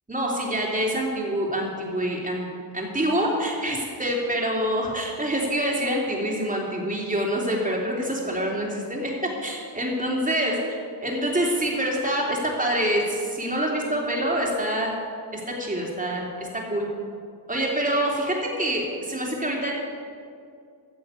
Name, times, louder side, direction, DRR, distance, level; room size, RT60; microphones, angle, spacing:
voice 1, 0.1-2.5 2.7-14.9 15.3-16.9 17.5-19.7, right 1 dB, 20° right, -2 dB, 3.3 m, -26 dB
15.0 x 7.1 x 8.3 m, 2.4 s
cardioid pair, 95°, 44 cm